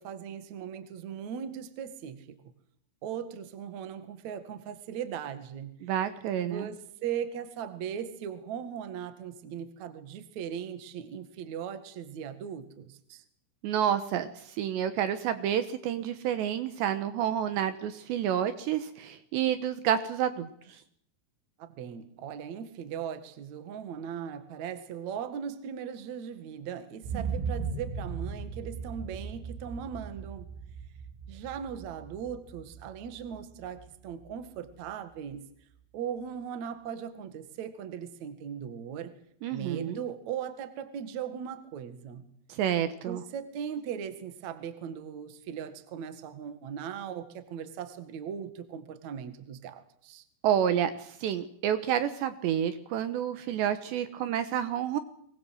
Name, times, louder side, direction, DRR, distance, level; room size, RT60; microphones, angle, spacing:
voice 1, 0.0-2.4 3.0-5.8 6.5-13.2 21.6-30.5 31.3-35.5 35.9-39.1 39.5-42.3 43.1-50.2, right 8 dB, 50° right, 10 dB, 2.3 m, -39 dB
voice 2, 5.8-6.7 13.6-20.5 39.4-40.0 42.5-43.2 50.4-55.0, right 10 dB, 70° right, 10 dB, 3.1 m, -29 dB
sound 1, 27.0-34.9 35.3-35.4, right 5 dB, 90° right, 4.7 m, -38 dB
24.0 x 20.5 x 7.9 m, 0.70 s
omnidirectional pair, 5.6 m